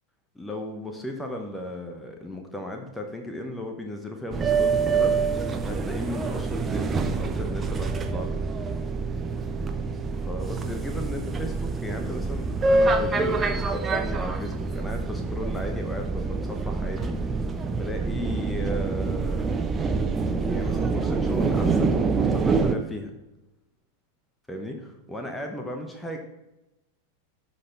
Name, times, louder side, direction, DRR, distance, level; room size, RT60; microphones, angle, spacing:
voice 1, 0.3-8.4 10.2-19.5 20.5-23.1 24.5-26.2, left 1 dB, 5° left, 3 dB, 1.1 m, -35 dB
sound 1, 4.3-22.8, right 4 dB, 20° right, 0.7 m, -26 dB
12.5 x 4.4 x 4.5 m, 0.96 s
figure-of-eight pair, 90°, 0 cm